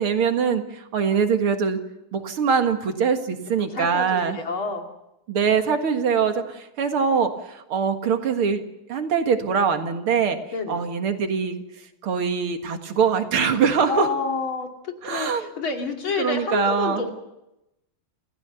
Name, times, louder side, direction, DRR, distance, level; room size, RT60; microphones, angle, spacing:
voice 1, 0.0-1.8 2.1-4.4 5.3-8.6 8.9-10.4 10.7-11.6 12.0-14.1 15.0-15.5 16.2-17.0, right 6 dB, 80° right, 6 dB, 2.7 m, -23 dB
voice 2, 3.6-4.8 10.5-10.8 13.9-17.1, left 4 dB, 70° left, 3 dB, 3.3 m, -28 dB
28.0 x 16.0 x 7.0 m, 0.89 s
omnidirectional pair, 2.3 m